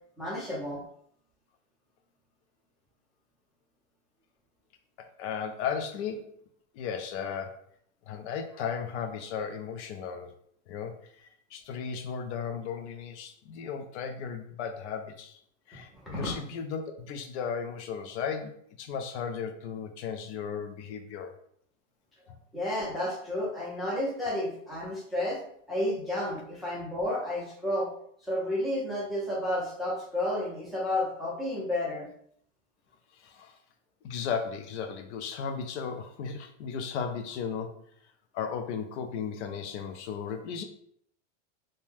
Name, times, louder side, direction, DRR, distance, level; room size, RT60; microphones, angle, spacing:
voice 1, 0.2-0.8 15.9-16.3 22.5-25.4 25.7-27.9 28.2-32.1, left 1 dB, ahead, -7 dB, 0.5 m, -31 dB
voice 2, 5.0-6.3 6.7-7.6 8.1-10.3 10.7-15.4 15.7-21.3 33.1-33.6 34.0-37.8 38.3-40.6, left 6 dB, 65° left, 5 dB, 0.5 m, -35 dB
2.7 x 2.1 x 3.2 m, 0.65 s
supercardioid pair, 155°, 38 cm